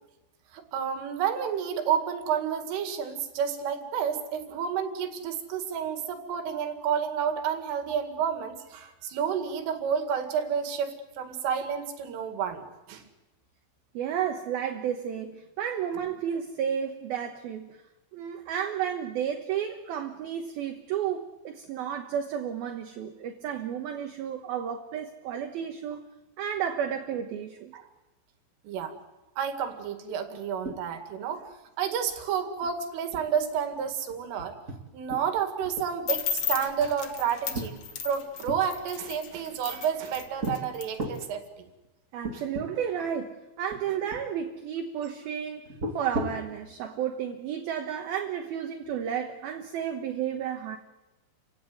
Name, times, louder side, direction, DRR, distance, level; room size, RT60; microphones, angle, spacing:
voice 1, 0.5-12.6 12.9-13.0 27.7-27.8 28.6-28.9 29.4-31.4 31.8-34.5 34.9-37.8 38.0-41.4, right 7 dB, 90° right, 4.7 m, -30 dB
voice 2, 13.9-17.8 18.1-26.1 26.4-27.7 42.1-50.8, right 8 dB, 70° right, 2.6 m, -32 dB
sound 1, 30.6-31.1 31.4-31.5 31.9-32.1 32.6-32.7 33.1-35.3 35.6-36.3 36.8-38.6 39.3-40.0 40.4-40.6 41.0-41.3 41.8-41.9 42.2-42.7 43.0-43.1 43.7-44.3 45.6-46.5, right 1 dB, 35° right, 1.2 m, -36 dB
sound 2, 36.1-41.3, left 8 dB, 75° left, 1.4 m, -34 dB
29.5 x 16.5 x 9.6 m
omnidirectional pair, 5.5 m